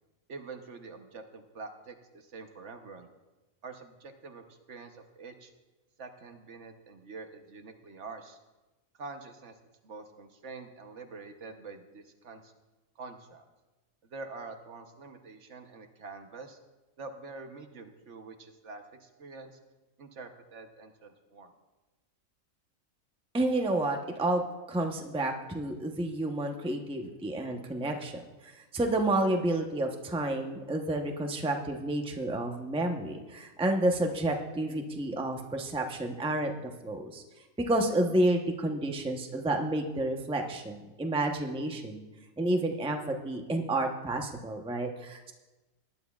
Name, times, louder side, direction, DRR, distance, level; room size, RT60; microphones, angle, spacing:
voice 1, 0.3-3.1 3.6-5.5 6.0-8.4 8.9-9.5 9.8-12.5 13.0-13.4 14.1-16.6 17.0-19.6 20.0-21.5, right 4 dB, 60° right, 5 dB, 1.2 m, -46 dB
voice 2, 23.3-28.1 28.4-36.5 36.8-37.2 37.6-42.0 42.4-45.3, right 1 dB, 5° right, 3 dB, 0.7 m, -30 dB
19.0 x 10.5 x 2.4 m, 1.1 s
omnidirectional pair, 1.4 m